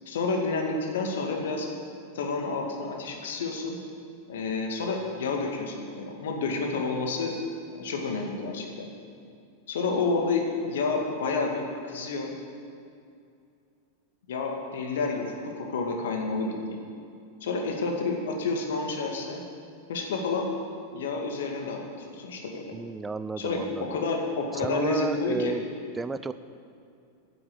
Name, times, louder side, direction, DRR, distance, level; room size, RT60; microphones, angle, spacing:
voice 1, 0.1-1.7 2.1-3.8 4.3-7.3 7.8-8.7 9.7-12.3 14.3-16.8 17.4-19.4 19.9-20.5 20.9-22.7 23.4-25.5, left 3 dB, 60° left, 1 dB, 2.1 m, -29 dB
voice 2, 22.7-24.0 24.6-25.6 25.9-26.3, right 4 dB, 15° right, 13 dB, 0.5 m, -32 dB
11.0 x 9.3 x 8.2 m, 2.5 s
figure-of-eight pair, 90°, 0 cm